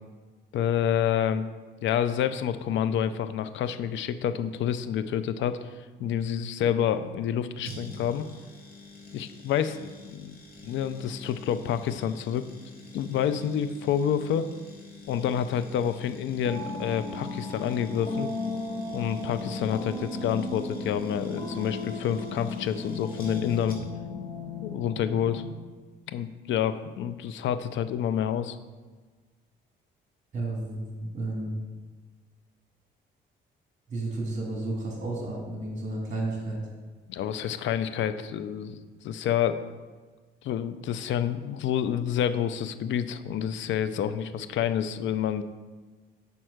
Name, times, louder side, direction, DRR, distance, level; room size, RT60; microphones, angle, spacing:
voice 1, 0.5-1.5 1.8-5.7 6.0-8.3 9.1-10.4 10.6-12.4 12.9-14.5 15.1-18.3 18.9-23.8 24.6-25.4 26.1-28.6 37.1-38.8 39.0-39.6 40.4-45.4, left 9 dB, 70° left, 11 dB, 0.5 m, -28 dB
sound 1, 7.6-24.1 24.4-24.5, left 3 dB, 45° left, 1.9 m, -46 dB
sound 2, 16.4-25.5, left 3 dB, 25° left, 1.3 m, -35 dB
voice 2, 30.3-31.5 33.9-36.6, right 2 dB, 35° right, -2 dB, 2.1 m, -32 dB
5.5 x 4.5 x 6.3 m, 1.4 s
cardioid pair, 90°, 20 cm